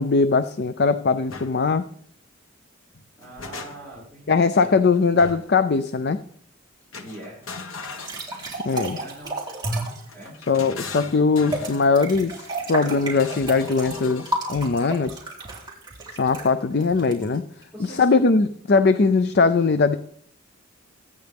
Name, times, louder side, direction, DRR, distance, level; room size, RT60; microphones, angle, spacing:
voice 1, 0.0-1.9 4.3-6.2 8.6-9.0 10.5-15.2 16.1-17.4 17.8-20.0, left 4 dB, 50° left, 12 dB, 0.5 m, -20 dB
sound 1, 1.3-1.5 2.9-4.1 5.2-5.6 6.9-8.8 10.1-11.9 13.1-14.4, left 4 dB, 75° left, 1.4 m, -39 dB
voice 2, 3.2-4.7 7.0-7.5 8.6-10.4 17.7-18.1, right 1 dB, 10° left, -7 dB, 6.0 m, -43 dB
sound 2, 7.8-10.1 11.5-17.6, right 1 dB, 20° right, 3.7 m, -32 dB
23.5 x 9.3 x 3.5 m, 0.63 s
head